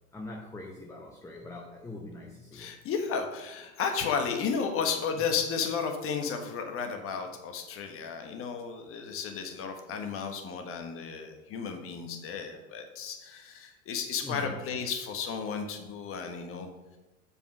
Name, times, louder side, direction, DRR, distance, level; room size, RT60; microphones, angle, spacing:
voice 1, 0.1-2.7 3.7-3.8 14.2-14.6, left 2 dB, 5° left, 1 dB, 0.8 m, -42 dB
voice 2, 2.5-16.7, left 6 dB, 30° left, 4 dB, 1.4 m, -33 dB
7.2 x 5.5 x 5.3 m, 1.1 s
hypercardioid pair, 100°, 42 cm